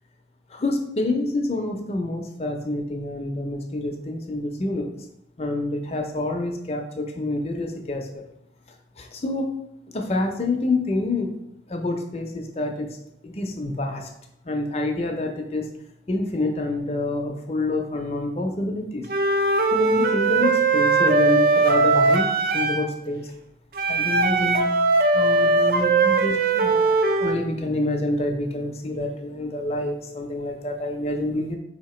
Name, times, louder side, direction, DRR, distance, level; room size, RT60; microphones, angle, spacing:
voice 1, 0.5-4.9 5.4-8.2 9.0-9.6 9.9-11.3 11.7-12.9 13.2-14.1 14.5-15.6 16.1-19.0 19.7-23.3 23.9-24.7 25.1-26.9 27.2-31.6, left 2 dB, 35° left, 3 dB, 0.6 m, -27 dB
Wind instrument woodwind instrument, 19.1-22.9 23.7-27.4, right 3 dB, 55° right, 0.4 m, -20 dB
4.3 x 2.8 x 4.2 m, 0.81 s
head